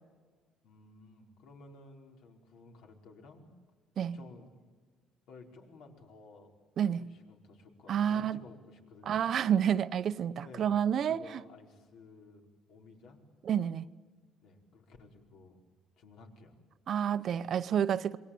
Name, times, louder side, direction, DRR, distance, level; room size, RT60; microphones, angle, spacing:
voice 1, 0.6-3.5 3.9-4.7 5.3-6.5 6.9-9.2 10.4-10.7 11.0-13.2 14.4-15.6 16.0-16.6, left 3 dB, 70° left, 4.8 m, -54 dB
voice 2, 7.9-8.4 9.1-11.2 13.4-13.9 16.9-18.2, right 9 dB, 45° right, 0.8 m, -29 dB
27.5 x 24.0 x 8.7 m
cardioid pair, 150°, 0 cm